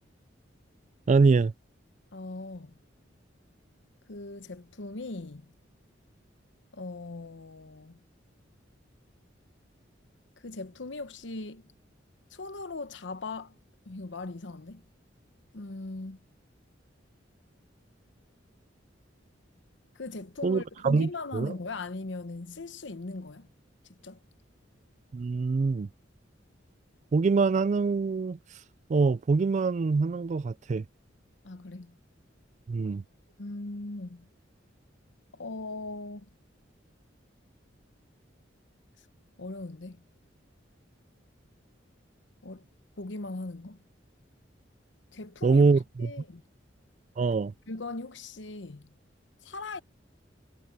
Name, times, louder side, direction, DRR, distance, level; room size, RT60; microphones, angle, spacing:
voice 1, 1.1-1.5 20.4-21.5 25.1-25.9 27.1-28.4 28.9-30.8 32.7-33.0 45.4-46.1 47.2-47.5, right 4 dB, 40° right, 0.3 m, -24 dB
voice 2, 2.1-2.7 4.1-5.5 6.7-8.0 10.4-11.7 12.3-13.6 13.9-14.8 15.5-16.2 19.9-23.5 23.9-24.2 31.4-31.9 33.4-34.3 35.3-36.3 39.4-40.0 42.4-42.7 43.0-43.8 45.1-45.6 46.0-46.4 47.7-48.9 49.4-49.8, left 3 dB, 70° left, 0.9 m, -39 dB
head